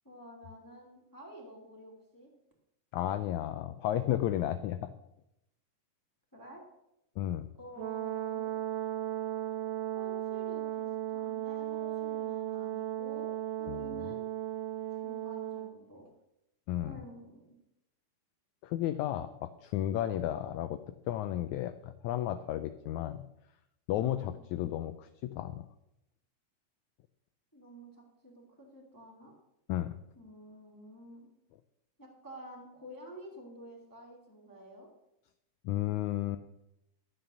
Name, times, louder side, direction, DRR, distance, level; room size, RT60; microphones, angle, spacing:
voice 1, 0.0-2.3 6.3-6.6 7.6-8.5 9.9-14.2 15.0-16.1 16.8-17.6 24.0-24.4 27.5-29.3 30.2-31.3 32.0-34.9, equal, 5° left, -2 dB, 2.0 m, -50 dB
voice 2, 2.9-4.9 7.2-7.5 13.7-14.1 16.7-17.0 18.6-20.8 21.1-23.2 23.9-25.6 29.7-30.0 35.6-36.4, left 12 dB, 85° left, 11 dB, 1.7 m, -33 dB
Brass instrument, 7.7-15.7, right 13 dB, 65° right, 2.1 m, -36 dB
12.0 x 7.8 x 6.9 m, 0.85 s
omnidirectional pair, 3.8 m